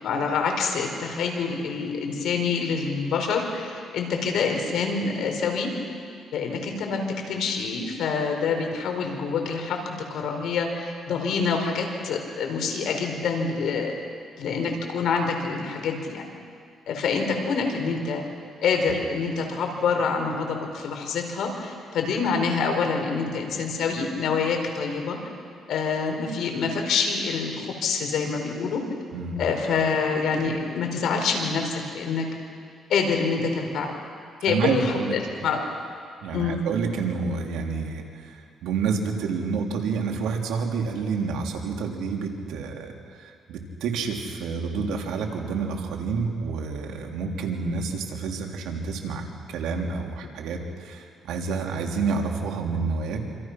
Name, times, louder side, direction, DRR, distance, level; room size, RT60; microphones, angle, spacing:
voice 1, 0.0-5.7 6.3-7.0 7.3-13.9 14.4-16.3 16.9-18.2 18.6-25.2 25.7-28.8 29.4-32.2 32.9-33.9 34.4-35.6 36.3-36.6, left 5 dB, 75° left, 3 dB, 4.6 m, -26 dB
voice 2, 34.5-35.1 36.2-42.9 43.2-53.2, right 5 dB, 85° right, 1 dB, 3.3 m, -29 dB
27.0 x 27.0 x 6.1 m, 2.3 s
cardioid pair, 90°, 0 cm